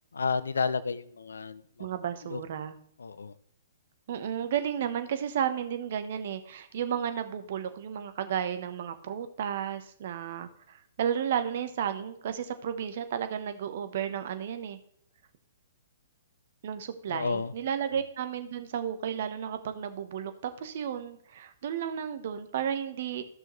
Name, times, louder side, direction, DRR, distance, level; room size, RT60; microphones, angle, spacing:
voice 1, 0.1-1.9 2.2-2.4 3.0-3.3 17.1-17.5, left 5 dB, 75° left, 16 dB, 0.6 m, -31 dB
voice 2, 1.8-2.7 4.1-14.8 16.6-23.2, right 8 dB, 55° right, 9 dB, 1.1 m, -33 dB
13.5 x 6.2 x 3.2 m, 0.64 s
figure-of-eight pair, 120°, 0 cm